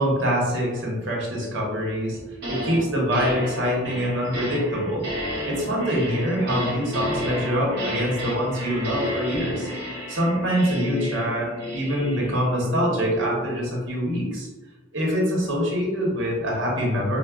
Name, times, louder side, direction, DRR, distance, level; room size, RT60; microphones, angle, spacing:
voice 1, 0.0-2.2 2.5-5.1 5.4-9.7 10.1-14.5 14.9-17.2, equal, 85° right, -2 dB, 0.9 m, -24 dB
sound 1, 2.1-2.8 3.1-13.5, equal, 60° right, 0.9 m, -31 dB
4.6 x 2.0 x 2.2 m, 1.2 s
head